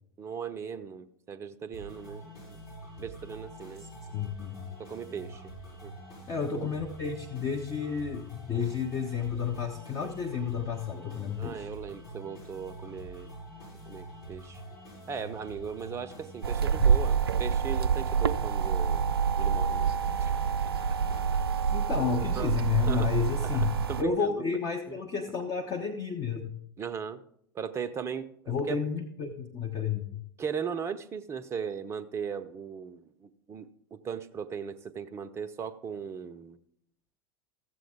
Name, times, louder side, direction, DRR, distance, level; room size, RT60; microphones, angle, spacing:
voice 1, 0.2-2.2 2.5-2.6 3.0-3.9 4.8-5.4 5.8-5.9 11.4-13.3 13.9-14.6 15.1-19.1 19.4-19.9 20.2-20.3 22.4-23.1 23.5-24.4 24.9-25.0 26.8-27.2 27.5-28.8 30.4-36.6, right 7 dB, 20° right, 12 dB, 0.6 m, -38 dB
sound 1, 1.7-21.7, right 1 dB, 65° left, 5.2 m, -46 dB
voice 2, 4.1-4.7 6.3-11.7 21.7-23.7 24.0-26.5 28.5-30.2, left 6 dB, 30° left, 3 dB, 0.8 m, -31 dB
sound 2, 16.4-24.0, right 6 dB, 70° right, 0.4 m, -27 dB
14.0 x 7.7 x 3.6 m, 0.71 s
figure-of-eight pair, 85°, 13 cm